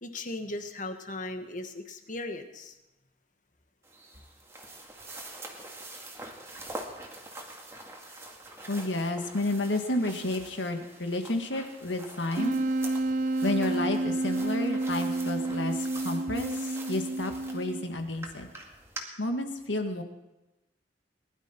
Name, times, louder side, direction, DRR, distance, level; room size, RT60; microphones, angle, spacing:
voice 1, 0.0-2.8, left 2 dB, 45° left, 7 dB, 1.4 m, -37 dB
sound 1, 3.8-19.0, right 2 dB, 15° right, 2.0 m, -45 dB
voice 2, 8.7-12.6 13.4-18.5 19.2-20.0, left 2 dB, 80° left, 5 dB, 1.8 m, -31 dB
Wind instrument woodwind instrument, 12.4-18.0, right 2 dB, 45° right, 0.5 m, -30 dB
20.5 x 12.0 x 4.5 m, 0.98 s
head